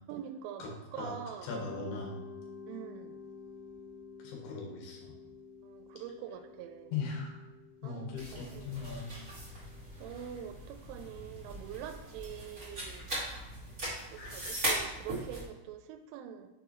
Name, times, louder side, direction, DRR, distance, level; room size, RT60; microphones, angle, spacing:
voice 1, 0.1-1.5 2.7-3.2 5.6-7.0 7.8-8.2 8.5-8.9 10.0-13.1 14.1-16.5, right 9 dB, 90° right, 6 dB, 3.1 m, -44 dB
voice 2, 1.4-2.2 4.2-5.2 6.9-7.4 7.8-9.1 14.1-14.6, left 4 dB, 70° left, 0 dB, 2.7 m, -39 dB
Mallet percussion, 1.5-10.2, left 5 dB, 85° left, 3.0 m, -50 dB
sound 1, 8.2-15.4, right 1 dB, 55° right, 0.8 m, -39 dB
6.7 x 4.8 x 3.0 m, 1.0 s
omnidirectional pair, 5.6 m